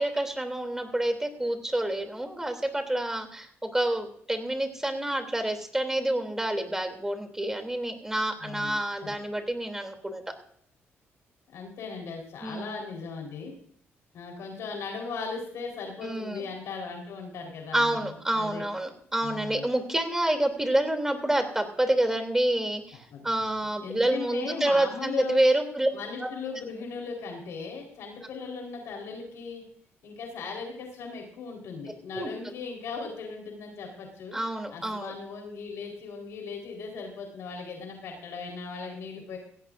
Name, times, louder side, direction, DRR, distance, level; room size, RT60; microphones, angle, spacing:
voice 1, 0.0-10.2 12.4-12.7 16.0-16.4 17.7-23.0 23.2-25.9 26.2-26.3 32.1-32.3 34.3-35.1, right 1 dB, 10° right, 5 dB, 3.0 m, -28 dB
voice 2, 8.4-9.1 11.5-13.5 14.1-18.7 19.2-19.6 23.1-23.3 23.8-25.4 25.9-29.6 30.0-34.4 34.7-39.4, left 5 dB, 75° left, 2 dB, 4.2 m, -38 dB
17.0 x 16.0 x 2.6 m, 0.62 s
cardioid pair, 100°, 5 cm